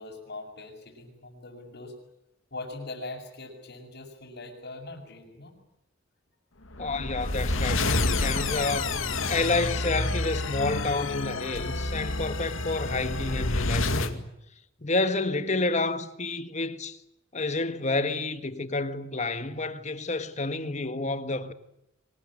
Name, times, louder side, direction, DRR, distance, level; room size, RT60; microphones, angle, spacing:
voice 1, 0.0-1.9 2.5-5.6, left 2 dB, 55° left, 6.4 m, -41 dB
sound 1, 6.7-14.1, left 2 dB, 85° left, 2.3 m, -28 dB
voice 2, 6.8-8.9 9.3-14.3 14.8-17.0 17.3-21.5, left 3 dB, 35° left, 1.7 m, -29 dB
25.0 x 20.0 x 9.8 m
head